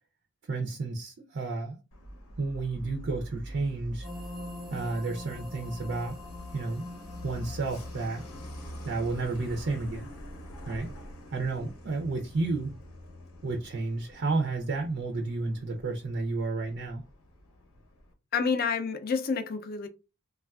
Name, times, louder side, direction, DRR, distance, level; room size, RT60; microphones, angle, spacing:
voice 1, 0.5-1.8 2.4-4.1 4.7-6.2 6.5-6.9 7.2-8.2 8.9-10.1 10.7-10.9 11.3-12.8 13.4-17.0, right 3 dB, 50° right, 0.4 m, -31 dB
Truck, 1.9-18.1, equal, 75° left, 0.8 m, -45 dB
sound 1, 4.0-11.8, left 1 dB, ahead, 0.7 m, -46 dB
voice 2, 18.3-19.9, left 5 dB, 45° left, 0.4 m, -28 dB
3.3 x 2.3 x 2.3 m
head